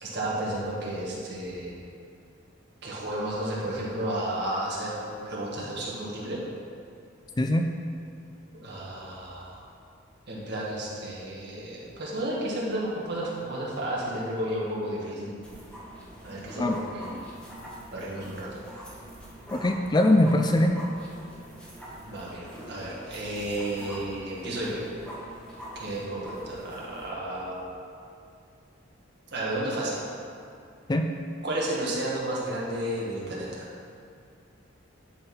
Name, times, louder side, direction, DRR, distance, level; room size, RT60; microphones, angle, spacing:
voice 1, 0.0-1.7 2.8-6.4 8.6-9.6 10.3-15.4 16.2-17.2 17.9-18.6 22.0-24.8 25.8-27.7 29.3-30.0 31.4-33.7, right 1 dB, 55° right, -5 dB, 1.9 m, -32 dB
sound 1, 15.4-27.1, equal, 5° left, 1.5 m, -44 dB
voice 2, 19.5-20.7 30.9-31.1, left 1 dB, 20° left, 4 dB, 0.3 m, -22 dB
10.5 x 4.2 x 5.5 m, 2.5 s
head